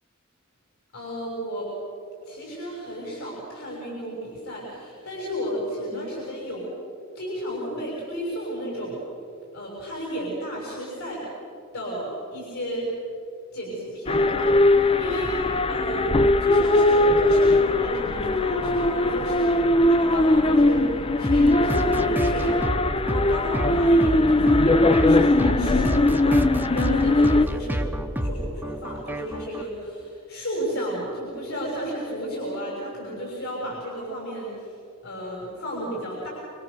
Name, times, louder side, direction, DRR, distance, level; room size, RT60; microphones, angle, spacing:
voice 1, 0.9-1.7 2.2-6.7 7.1-9.0 9.5-11.3 11.7-12.9 13.5-22.7 23.0-27.8 28.2-34.7 35.0-36.3, equal, 75° left, -4 dB, 6.7 m, -33 dB
sound 1, 14.1-27.5, left 2 dB, 25° left, 0.7 m, -20 dB
sound 2, 21.2-29.6, equal, 10° right, 1.0 m, -29 dB
27.0 x 25.5 x 6.9 m, 2.7 s
head